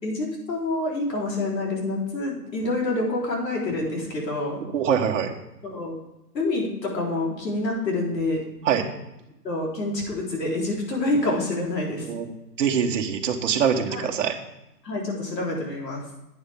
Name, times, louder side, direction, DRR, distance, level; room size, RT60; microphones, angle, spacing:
voice 1, 0.0-4.6 5.6-5.9 6.3-8.4 9.4-12.1 13.9-14.1 14.8-16.0, left 2 dB, 80° left, -2 dB, 4.3 m, -27 dB
voice 2, 4.6-5.3 8.6-8.9 12.0-12.3 12.6-14.4, right 7 dB, 50° right, 2 dB, 1.4 m, -24 dB
11.0 x 8.8 x 3.7 m, 0.92 s
hypercardioid pair, 165°, 49 cm